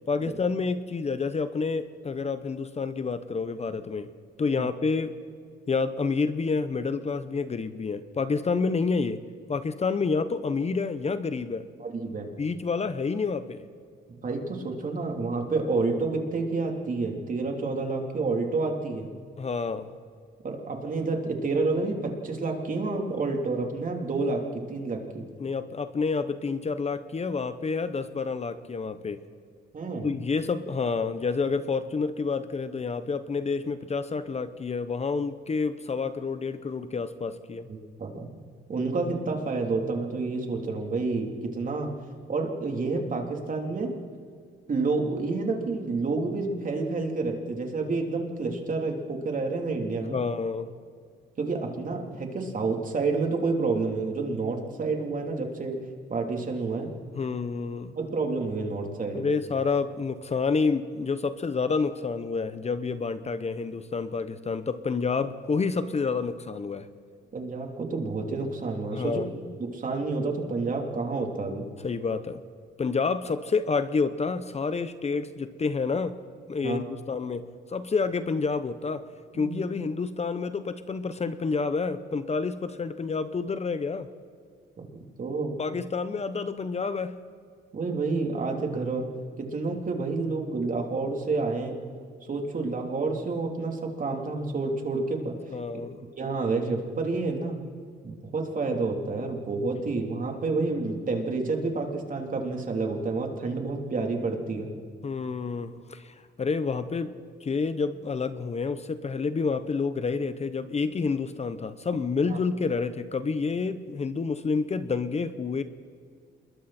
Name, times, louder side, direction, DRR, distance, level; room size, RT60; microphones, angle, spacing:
voice 1, 0.0-4.1 4.4-5.1 5.7-9.2 9.5-11.7 12.4-13.6 19.4-19.9 25.4-29.2 30.0-37.7 50.1-50.7 57.1-57.9 59.1-66.9 68.9-69.3 71.8-72.4 72.8-76.2 76.5-79.1 79.3-84.1 85.6-87.2 95.5-96.0 105.0-107.1 107.4-115.6, left 4 dB, 35° left, 12 dB, 1.0 m, -29 dB
voice 2, 11.8-12.3 14.2-19.1 20.4-24.4 24.7-25.3 29.7-30.1 37.7-38.3 38.7-41.9 42.3-44.0 44.7-50.2 51.4-55.8 56.1-56.9 58.0-59.3 67.3-69.3 69.6-71.7 76.6-76.8 79.3-79.6 84.8-85.6 87.7-89.1 89.4-91.8 92.3-95.5 96.2-97.6 98.0-104.7 112.3-112.4, right 3 dB, 45° right, 2 dB, 3.5 m, -29 dB
27.5 x 22.0 x 4.4 m, 2.2 s
cardioid pair, 90°, 20 cm